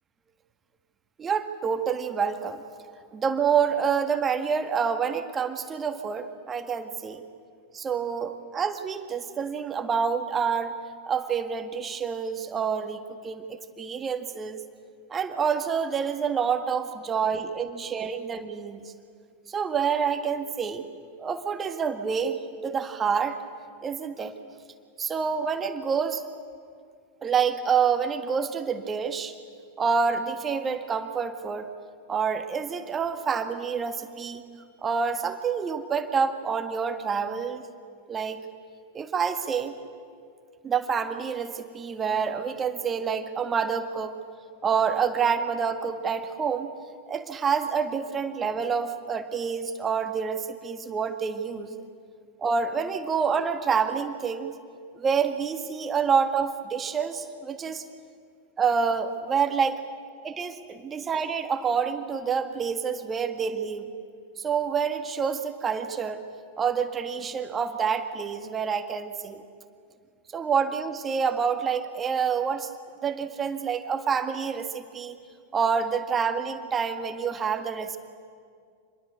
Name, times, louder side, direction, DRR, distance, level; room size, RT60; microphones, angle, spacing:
voice 1, 1.2-2.6 3.1-7.2 7.7-10.7 11.1-13.4 13.8-14.6 15.1-18.9 19.5-20.9 21.2-23.4 23.8-24.3 25.0-26.2 27.2-29.3 29.8-31.7 32.1-34.4 34.8-37.6 38.1-38.4 38.9-39.7 40.6-44.2 44.6-46.7 47.1-51.8 52.4-54.5 55.0-57.8 58.6-59.8 60.2-63.9 64.4-66.2 66.6-69.4 70.3-72.7 73.0-75.2 75.5-78.0, right 6 dB, 20° right, 8 dB, 1.8 m, -27 dB
27.0 x 21.5 x 8.1 m, 2.2 s
figure-of-eight pair, 90°, 0 cm